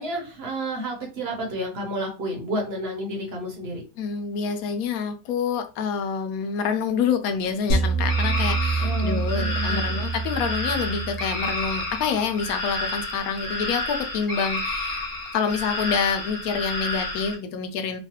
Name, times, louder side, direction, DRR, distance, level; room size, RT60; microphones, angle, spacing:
voice 1, 0.0-3.8 8.8-10.1, equal, 50° right, 0 dB, 1.0 m, -31 dB
voice 2, 4.0-15.0 15.3-18.0, left 6 dB, 85° left, 7 dB, 1.0 m, -27 dB
sound 1, 7.7-12.0, right 4 dB, 65° left, 1.2 m, -26 dB
sound 2, 8.1-17.3, left 2 dB, 35° left, 1.5 m, -30 dB
3.1 x 2.3 x 2.8 m, 0.31 s
omnidirectional pair, 1.5 m